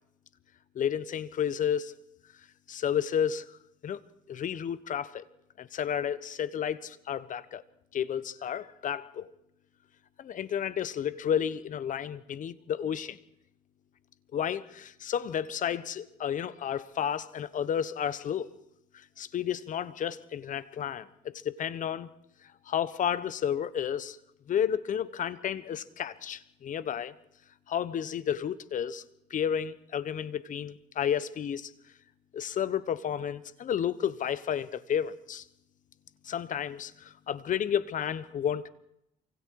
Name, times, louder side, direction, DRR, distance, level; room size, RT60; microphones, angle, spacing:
voice 1, 0.7-1.9 2.7-3.6 3.8-4.0 4.3-5.2 5.6-7.6 7.9-9.3 10.2-13.2 14.3-18.6 18.9-22.1 22.7-24.2 24.5-27.1 27.7-29.0 29.3-31.7 32.3-35.4 36.2-38.7, left 9 dB, 50° left, 1.2 m, -31 dB
28.0 x 25.0 x 4.8 m
cardioid pair, 110°, 17 cm